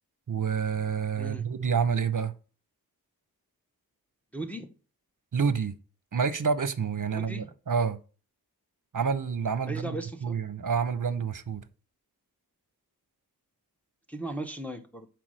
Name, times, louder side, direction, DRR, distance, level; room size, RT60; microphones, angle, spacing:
voice 1, 0.3-2.3 5.3-5.7 6.1-8.0 8.9-11.6, right 6 dB, 55° right, 0.8 m, -28 dB
voice 2, 4.3-4.7 7.1-7.5 9.7-10.4 14.1-15.1, right 1 dB, 5° left, 0.9 m, -37 dB
5.8 x 4.6 x 6.3 m
wide cardioid pair, 55°, 38 cm